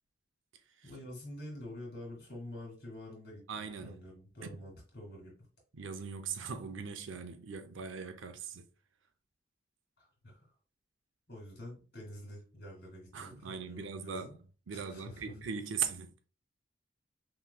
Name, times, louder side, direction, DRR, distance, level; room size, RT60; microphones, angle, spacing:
voice 1, 0.8-5.3 10.0-10.5 11.3-14.3 14.7-15.3, left 1 dB, 55° left, 2.3 m, -47 dB
voice 2, 3.5-4.0 4.4-4.6 5.7-8.7 13.1-14.4 14.7-16.1, right 6 dB, 75° right, 0.5 m, -40 dB
5.8 x 3.1 x 2.2 m
head